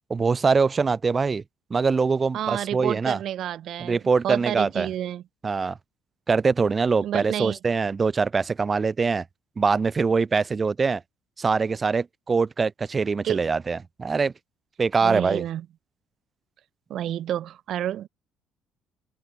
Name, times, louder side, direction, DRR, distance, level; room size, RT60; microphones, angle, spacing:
voice 1, 0.1-1.4 1.7-3.2 3.8-4.9 5.4-5.8 6.3-9.2 9.6-11.0 11.4-14.3 14.8-15.4, right 4 dB, 20° right, 0.9 m, -23 dB
voice 2, 2.3-5.2 7.0-7.6 13.2-13.5 15.0-15.6 16.9-18.1, right 11 dB, 50° right, 0.9 m, -30 dB
cardioid pair, 155°, 0 cm